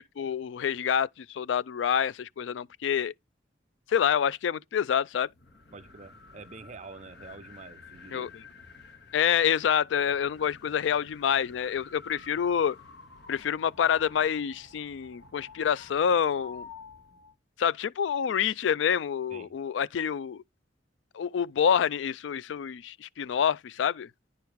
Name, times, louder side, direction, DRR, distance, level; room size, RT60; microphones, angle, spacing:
voice 1, 0.2-3.1 3.9-5.3 8.1-8.4 9.1-12.8 13.3-16.7 17.6-20.4 21.1-24.1, left 8 dB, 80° left, 0.3 m, -27 dB
sound 1, 5.2-17.3, left 4 dB, 65° left, 1.9 m, -51 dB
voice 2, 5.7-8.3 19.3-19.5, right 3 dB, 40° right, 0.7 m, -47 dB
10.0 x 4.6 x 3.4 m
head